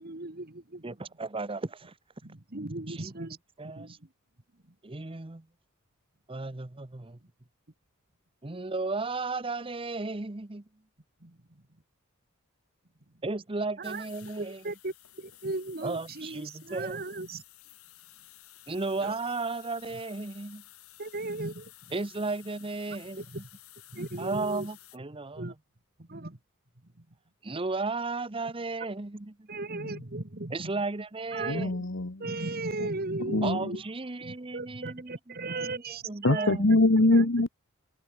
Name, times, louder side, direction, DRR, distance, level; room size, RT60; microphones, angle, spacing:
voice 1, 0.0-0.9 2.2-3.4 3.6-3.9 11.2-11.4 13.9-17.4 19.0-19.1 21.0-21.7 23.2-23.4 23.9-24.7 25.4-25.5 26.1-26.4 29.5-30.7 31.3-31.8 32.2-33.8 34.2-36.6 37.1-37.3, right 2 dB, 45° right, 1.9 m, -37 dB
voice 2, 0.8-1.9 2.9-3.3 3.6-4.0 4.8-5.4 6.3-7.2 8.4-10.6 13.2-14.7 15.8-17.0 18.7-20.6 21.9-23.4 24.2-25.4 27.4-29.5 30.5-31.7 33.4-37.1, right 3 dB, 25° right, 0.9 m, -35 dB
sound 1, 13.8-25.0, left 15 dB, 90° left, 5.1 m, -54 dB
voice 3, 31.5-32.2 33.3-33.6 36.2-37.5, left 2 dB, 60° left, 1.3 m, -23 dB
head